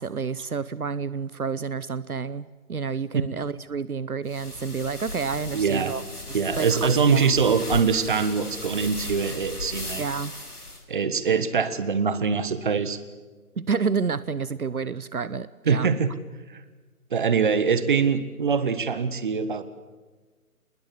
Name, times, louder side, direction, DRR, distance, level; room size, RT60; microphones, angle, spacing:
voice 1, 0.0-6.0 6.6-7.3 10.0-10.3 13.6-15.9, right 5 dB, 75° right, 18 dB, 0.9 m, -29 dB
sound 1, 4.3-10.8, left 1 dB, 90° left, 4.4 m, -36 dB
voice 2, 5.5-6.0 6.3-10.0 10.9-13.0 15.6-16.1 17.1-19.6, right 5 dB, 35° right, 13 dB, 1.5 m, -23 dB
27.0 x 20.5 x 8.2 m, 1.3 s
figure-of-eight pair, 150°, 44 cm